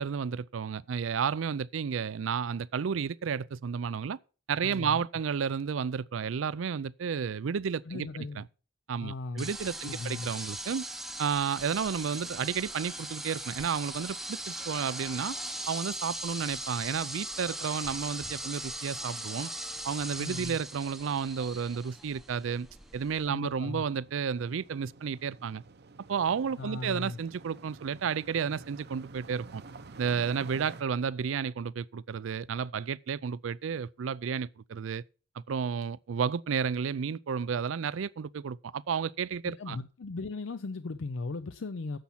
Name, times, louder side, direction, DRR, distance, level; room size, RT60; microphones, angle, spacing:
voice 1, 0.0-4.2 4.5-8.1 8.4-8.5 8.9-10.9 11.2-15.4 15.7-19.5 19.8-22.7 22.9-25.6 26.1-29.6 30.0-35.0 35.4-39.8, right 6 dB, 85° right, 0.4 m, -32 dB
voice 2, 4.6-5.1 7.8-8.4 9.0-9.5 9.8-10.3 20.2-20.6 23.3-23.9 26.6-27.2 39.4-42.0, left 3 dB, 75° left, 0.5 m, -37 dB
sound 1, 9.4-23.3, right 1 dB, ahead, 0.7 m, -39 dB
sound 2, 19.7-30.8, right 3 dB, 55° right, 0.7 m, -51 dB
10.5 x 7.1 x 5.6 m
head